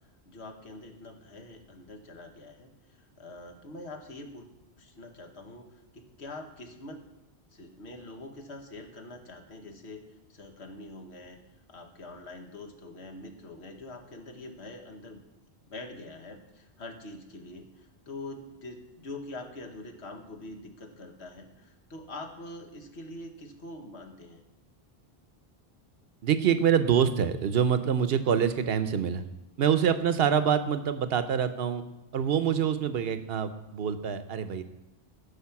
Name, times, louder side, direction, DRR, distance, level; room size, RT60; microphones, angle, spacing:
voice 1, 0.2-4.5 4.8-7.0 7.5-10.0 10.3-11.4 11.7-15.2 15.7-24.4, left 2 dB, 80° left, 4 dB, 1.6 m, -44 dB
voice 2, 26.2-29.2 29.6-31.8 32.1-34.6, right 8 dB, 70° right, 11 dB, 0.9 m, -25 dB
15.0 x 5.1 x 5.9 m, 0.96 s
omnidirectional pair, 1.1 m